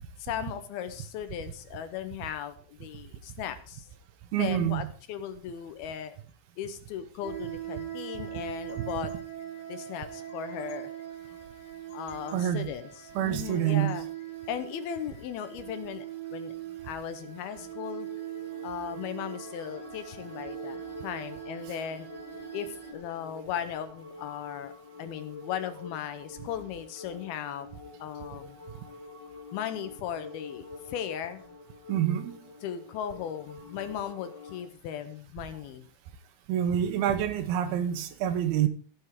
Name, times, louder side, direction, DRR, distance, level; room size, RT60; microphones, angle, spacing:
voice 1, 0.2-3.9 4.4-6.2 6.6-9.2 9.7-10.9 11.9-14.1 14.5-16.5 16.8-18.1 18.6-22.1 22.5-24.7 25.0-27.7 28.0-28.6 29.5-31.4 32.6-35.9, left 9 dB, 75° left, 2.6 m, -37 dB
voice 2, 4.3-4.9 8.8-8.9 12.3-12.7 13.2-14.0 31.9-32.4 36.5-38.7, right 10 dB, 75° right, 2.5 m, -27 dB
sound 1, 7.2-22.9, right 12 dB, 15° left, 2.9 m, -41 dB
sound 2, 17.1-34.7, left 4 dB, 30° left, 2.6 m, -47 dB
16.0 x 7.0 x 4.9 m
omnidirectional pair, 4.8 m